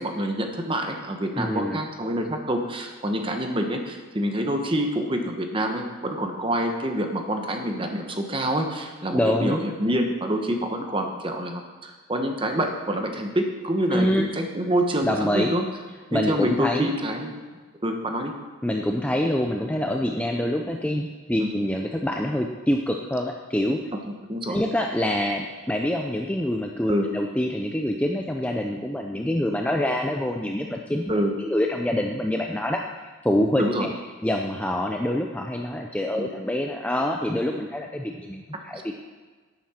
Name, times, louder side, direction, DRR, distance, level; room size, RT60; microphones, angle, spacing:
voice 1, 0.0-15.6 16.1-17.3 17.8-18.3 21.4-21.5 24.3-24.6 26.9-27.1 31.1-31.3 33.6-33.9 36.1-36.3 38.7-38.8, right 1 dB, 25° right, 4 dB, 1.0 m, -27 dB
voice 2, 1.4-1.8 9.1-9.6 13.9-14.3 15.0-15.5 16.1-16.9 18.6-23.8 24.5-31.1 31.4-32.8 33.2-33.9 34.2-39.0, left 1 dB, 5° left, 2 dB, 0.4 m, -26 dB
11.5 x 9.2 x 4.4 m, 1.4 s
head